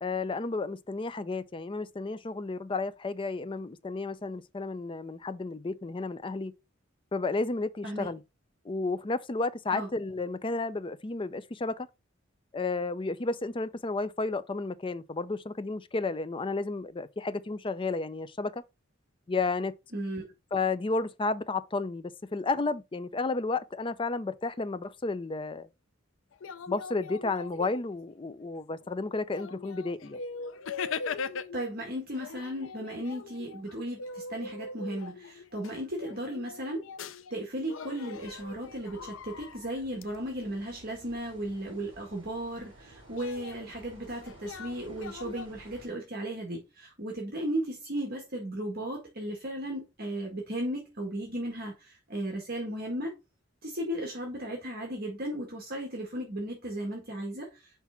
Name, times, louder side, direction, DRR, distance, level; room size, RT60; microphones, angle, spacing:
voice 1, 0.0-6.5 7.1-8.2 8.6-11.9 12.5-18.6 19.3-19.7 20.5-25.7 26.7-30.2, left 3 dB, 25° left, 0.5 m, -32 dB
voice 2, 19.9-20.2 31.5-36.8 37.3-53.1 53.6-57.8, right 1 dB, 50° right, 1.8 m, -35 dB
sound 1, 26.3-28.1 28.8-28.9 29.3-31.7 32.1-37.4 37.7-40.0 43.2-45.5, left 5 dB, 75° left, 0.5 m, -41 dB
sound 2, 38.1-45.9, right 1 dB, 25° right, 4.3 m, -54 dB
5.9 x 3.4 x 5.8 m
head